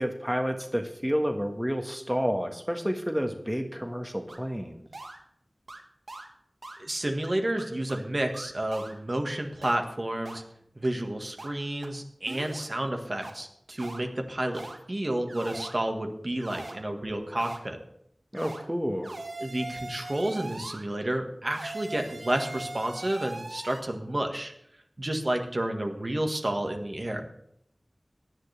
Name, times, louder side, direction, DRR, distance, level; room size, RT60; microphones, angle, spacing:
voice 1, 0.0-4.9 18.3-19.1, equal, 5° right, 4 dB, 1.5 m, -30 dB
sound 1, 4.3-4.4 4.9-5.2 5.7-5.8 6.1-6.3 6.6-6.8 7.2-7.3 7.6-8.0 8.3-8.9 9.6-9.8 10.2-10.4 10.8-10.9 11.4-11.5 11.8-11.9 12.3-12.6 13.2-13.3 13.8-14.0 14.5-14.8 15.3-15.7 16.4-16.7 17.4-17.6 18.3-18.6 19.0-20.8 21.5-23.8, right 2 dB, 90° right, 1.8 m, -40 dB
voice 2, 6.8-10.4 10.7-14.6 14.9-17.8 19.4-24.5 25.0-27.2, right 1 dB, 45° right, 4 dB, 1.7 m, -30 dB
17.0 x 11.0 x 3.4 m, 0.73 s
wide cardioid pair, 50°, 0 cm